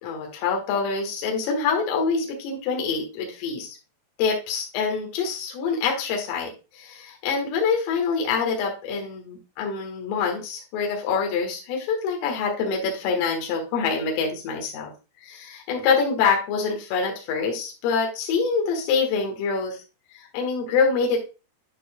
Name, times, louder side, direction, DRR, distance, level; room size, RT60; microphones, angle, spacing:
voice 1, 0.0-3.8 4.2-14.9 15.2-19.8 20.3-21.2, left 5 dB, 85° left, 0 dB, 4.2 m, -25 dB
11.5 x 4.6 x 2.2 m, 0.31 s
omnidirectional pair, 5.7 m